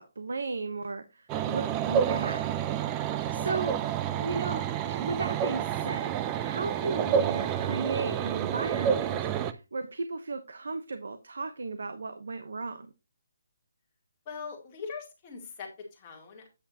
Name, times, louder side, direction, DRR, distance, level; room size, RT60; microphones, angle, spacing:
voice 1, 0.0-2.5 3.3-3.8 4.2-6.1 6.4-12.9, right 4 dB, 70° right, 1.0 m, -35 dB
sound 1, 1.3-9.5, right 9 dB, 10° right, 0.3 m, -29 dB
voice 2, 3.2-3.7 14.3-16.5, left 5 dB, 15° left, 2.0 m, -42 dB
8.7 x 7.6 x 2.9 m
hypercardioid pair, 175°, 0 cm